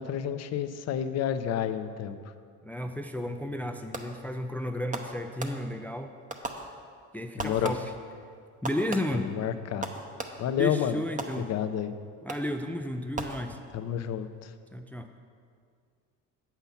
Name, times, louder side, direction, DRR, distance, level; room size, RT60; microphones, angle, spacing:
voice 1, 0.0-2.2 7.4-7.7 9.1-9.9 10.4-11.0 11.4-11.9 13.7-14.5, left 9 dB, 50° left, 10 dB, 0.6 m, -30 dB
voice 2, 2.6-6.2 7.1-7.9 8.6-9.3 10.6-11.5 12.2-13.6 14.7-15.1, left 1 dB, 5° left, 6 dB, 0.4 m, -33 dB
Fireworks, 3.9-4.4 4.9-5.9 6.3-7.1 7.4-8.1 8.6-10.6 11.2-11.8 12.3-12.7 13.1-13.9, right 3 dB, 25° right, 0.8 m, -39 dB
7.9 x 5.8 x 7.1 m, 2.1 s
cardioid pair, 95°, 33 cm